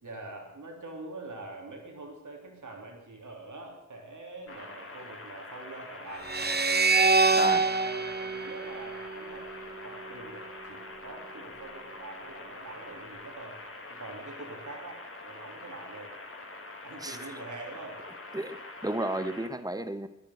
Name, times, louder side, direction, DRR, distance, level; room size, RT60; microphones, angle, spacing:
voice 1, 0.0-6.3 7.4-13.6 13.9-16.1 16.8-18.0, right 2 dB, 80° right, 1 dB, 3.4 m, -44 dB
sound 1, 4.5-19.5, left 2 dB, 45° left, 2.2 m, -45 dB
sound 2, 6.3-9.5, right 3 dB, 35° right, 0.9 m, -25 dB
voice 2, 7.3-7.7 17.0-17.3 18.3-20.1, right 1 dB, 10° right, 11 dB, 1.1 m, -33 dB
13.5 x 10.5 x 8.0 m, 0.87 s
wide cardioid pair, 55°, 30 cm